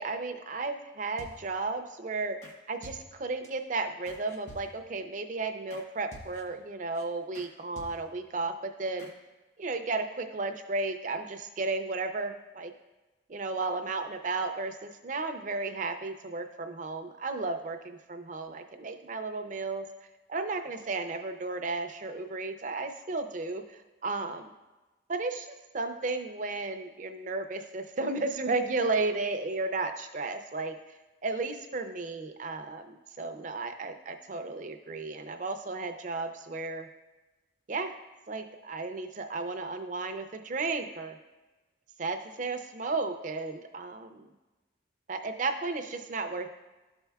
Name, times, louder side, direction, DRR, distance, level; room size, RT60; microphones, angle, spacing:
voice 1, 0.0-2.4 2.7-9.1 9.6-12.7 13.3-19.9 20.3-24.5 25.1-30.8 31.2-36.9 37.7-37.9 38.3-41.2 42.0-44.3 45.1-46.5, right 3 dB, 40° right, 6 dB, 0.5 m, -34 dB
sound 1, 1.2-1.7 2.4-2.6 2.8-3.5 4.1-5.0 5.7-5.9 6.1-6.6 7.0-7.1 7.3-7.5 7.8-8.3 9.0-9.1, equal, 40° left, 0.9 m, -50 dB
12.0 x 4.4 x 2.3 m, 1.1 s
head